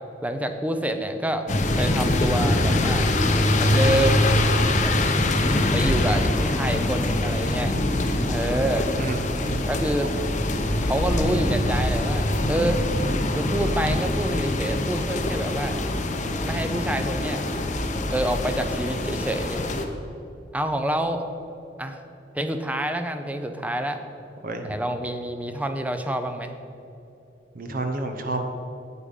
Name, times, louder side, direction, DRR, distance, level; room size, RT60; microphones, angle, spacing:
voice 1, 0.2-1.5 1.8-3.1 3.6-4.3 4.8-4.9 5.7-7.7 8.3-8.9 9.7-10.1 10.8-12.9 13.3-15.8 16.4-17.5 18.1-19.6 20.5-21.2 21.8-22.0 22.3-24.0 24.6-26.5, right 1 dB, 10° right, 7 dB, 0.6 m, -27 dB
sound 1, 1.5-19.9, left 1 dB, 40° left, 0.8 m, -23 dB
voice 2, 24.4-24.8 27.6-28.4, right 2 dB, 50° right, 5 dB, 0.9 m, -29 dB
8.8 x 8.4 x 5.4 m, 2.9 s
head